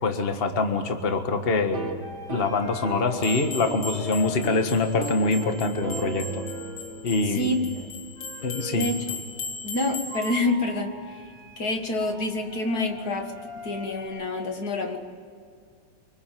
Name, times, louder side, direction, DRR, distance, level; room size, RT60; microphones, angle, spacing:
voice 1, 0.0-2.0 2.3-6.4 7.0-7.5 8.4-8.9, left 3 dB, 30° left, 6 dB, 1.7 m, -25 dB
sound 1, 1.6-4.0 4.3-4.7 5.0-8.8, right 3 dB, 70° right, 2.8 m, -38 dB
sound 2, 1.9-14.1, equal, 40° right, 7.7 m, -42 dB
sound 3, 3.2-10.4, left 3 dB, 70° left, 2.6 m, -38 dB
voice 2, 7.3-7.9 8.5-9.2 9.6-10.9 11.6-13.3 13.6-15.0, left 2 dB, 50° left, 5 dB, 2.4 m, -27 dB
25.0 x 24.5 x 7.7 m, 2.2 s
omnidirectional pair, 2.3 m